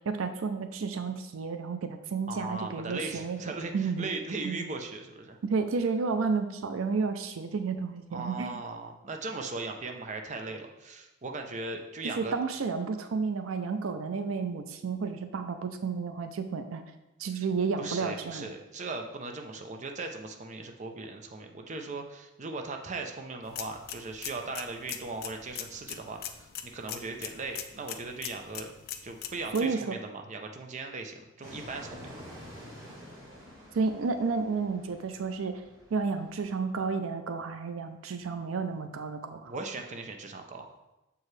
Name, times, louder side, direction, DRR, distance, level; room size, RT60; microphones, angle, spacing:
voice 1, 0.1-4.1 4.4-4.7 5.4-8.6 12.0-16.8 17.2-18.5 29.5-30.0 33.7-35.6 35.9-39.5, right 4 dB, 85° right, 8 dB, 0.5 m, -31 dB
voice 2, 2.3-5.4 8.1-12.3 17.3-17.5 17.8-28.7 29.0-32.1 39.4-40.8, right 3 dB, 35° right, 4 dB, 0.5 m, -38 dB
sound 1, 23.4-29.6, left 9 dB, 50° left, 0.4 m, -42 dB
Fixed-wing aircraft airplane, 31.4-36.6, equal, 15° right, 1.5 m, -48 dB
6.9 x 4.6 x 3.2 m, 0.97 s
head